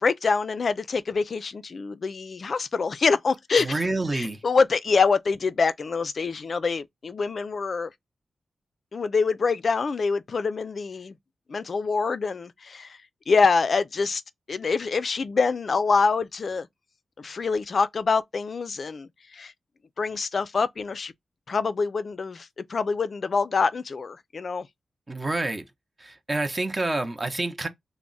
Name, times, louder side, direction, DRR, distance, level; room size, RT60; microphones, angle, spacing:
voice 1, 0.0-3.8 4.1-7.9 8.9-11.1 11.5-13.0 13.3-14.2 14.5-16.7 17.2-19.5 20.0-21.1 21.5-24.7, left 4 dB, 50° left, 0.4 m, -25 dB
voice 2, 3.6-4.4 25.1-25.6 26.0-27.7, right 2 dB, 25° right, 0.6 m, -28 dB
3.4 x 2.0 x 3.8 m
wide cardioid pair, 145°, 0 cm